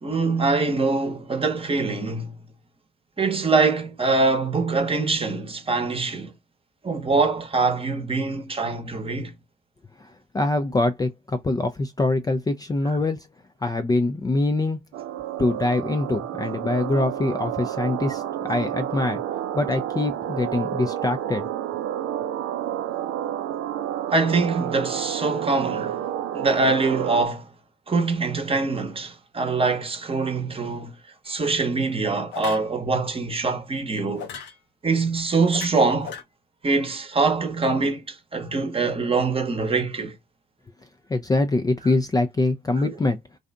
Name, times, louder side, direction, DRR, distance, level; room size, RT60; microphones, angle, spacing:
voice 1, 0.0-2.4 3.2-6.3 6.8-9.3 24.1-26.0 26.3-27.5 27.9-31.0 31.2-34.3 34.8-36.2 36.6-40.2 42.8-43.0, right 3 dB, 30° right, 0.9 m, -24 dB
voice 2, 10.0-13.3 13.6-14.8 15.4-19.2 19.5-21.5 41.1-43.2, left 2 dB, 20° left, 0.4 m, -24 dB
sound 1, 14.9-27.3, right 11 dB, 65° right, 0.5 m, -30 dB
sound 2, 31.3-31.5 32.3-32.7 34.2-34.6 35.5-36.2, left 7 dB, 65° left, 0.7 m, -37 dB
2.6 x 2.4 x 2.2 m
hypercardioid pair, 50°, 20 cm